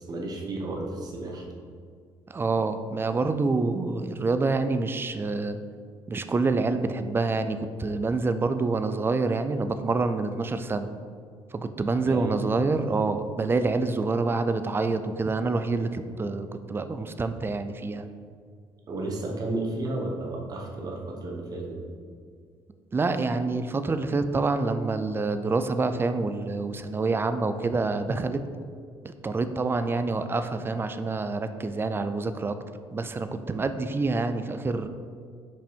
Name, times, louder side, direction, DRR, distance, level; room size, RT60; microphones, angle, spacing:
voice 1, 0.0-1.4 12.0-12.4 18.9-21.9, right 2 dB, 40° right, -1 dB, 1.2 m, -32 dB
voice 2, 2.3-5.6 6.1-10.9 11.5-18.1 22.9-28.4 29.0-32.6 32.9-34.9, right 3 dB, 20° right, 10 dB, 0.4 m, -27 dB
5.4 x 5.2 x 4.4 m, 2.1 s
cardioid pair, 110°, 10 cm